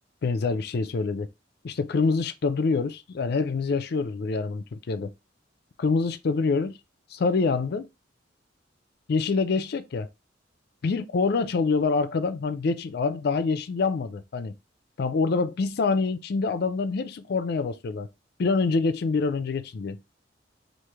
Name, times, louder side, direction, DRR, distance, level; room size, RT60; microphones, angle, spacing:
voice 1, 0.2-1.3 1.6-5.1 5.8-6.8 7.1-7.9 9.1-10.1 10.8-14.6 15.0-18.1 18.4-20.0, left 4 dB, 60° left, 0.4 m, -26 dB
3.1 x 2.5 x 3.4 m
head